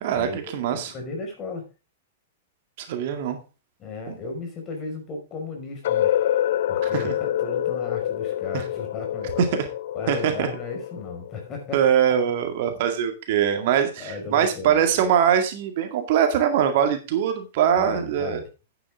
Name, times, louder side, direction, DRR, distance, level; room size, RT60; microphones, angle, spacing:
voice 1, 0.0-0.9 2.8-3.4 4.1-4.2 6.9-7.1 9.4-9.5 10.1-10.5 11.7-18.4, right 8 dB, 50° right, 6 dB, 2.0 m, -22 dB
voice 2, 0.7-1.7 3.8-6.1 6.7-9.5 9.9-11.8 14.0-15.1 17.8-18.5, left 3 dB, 30° left, 3 dB, 5.3 m, -35 dB
sound 1, 5.8-11.7, left 12 dB, 55° left, 0.6 m, -26 dB
11.0 x 9.1 x 3.6 m, 0.30 s
figure-of-eight pair, 100°, 0 cm